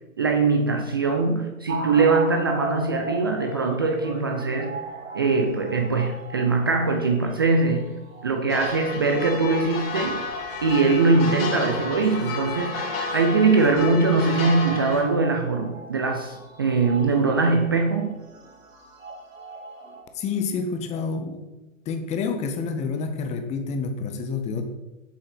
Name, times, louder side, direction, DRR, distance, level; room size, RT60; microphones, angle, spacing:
voice 1, 0.2-4.8 5.1-7.9 8.2-10.2 10.6-18.1, right 3 dB, 20° right, 4 dB, 0.3 m, -22 dB
sound 1, 1.7-9.8 10.3-20.0, right 3 dB, 70° right, 2.7 m, -38 dB
sound 2, 8.5-15.0, left 4 dB, 45° left, 2.3 m, -31 dB
voice 2, 20.1-21.4 21.9-24.6, left 5 dB, 15° left, 7 dB, 0.8 m, -28 dB
7.7 x 7.5 x 5.2 m, 1.1 s
figure-of-eight pair, 110°, 41 cm